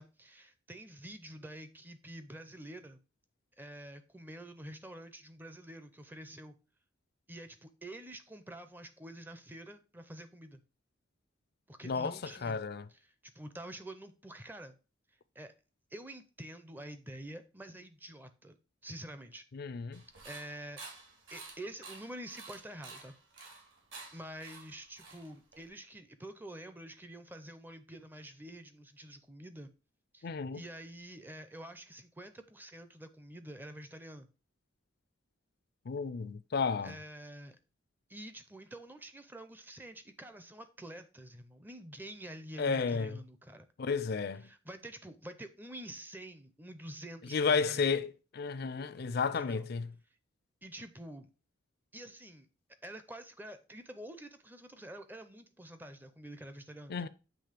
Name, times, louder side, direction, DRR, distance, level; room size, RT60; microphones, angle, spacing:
voice 1, 0.0-3.0 3.6-6.6 7.3-10.6 11.7-12.6 12.9-14.8 15.4-15.5 15.9-18.6 18.8-19.4 20.2-20.8 21.3-23.1 24.1-29.7 30.1-34.3 36.8-37.6 38.1-43.7 44.4-48.1 49.4-49.7 50.6-51.3 51.9-52.5 52.8-57.1, right 1 dB, 10° right, 0.5 m, -47 dB
voice 2, 12.4-12.8 19.5-20.0 30.2-30.6 35.9-37.0 42.6-43.2 43.8-44.5 47.3-49.8 56.9-57.1, left 5 dB, 50° left, 0.4 m, -32 dB
sound 1, 19.9-25.7, right 4 dB, 65° right, 2.1 m, -51 dB
7.6 x 3.1 x 5.0 m
head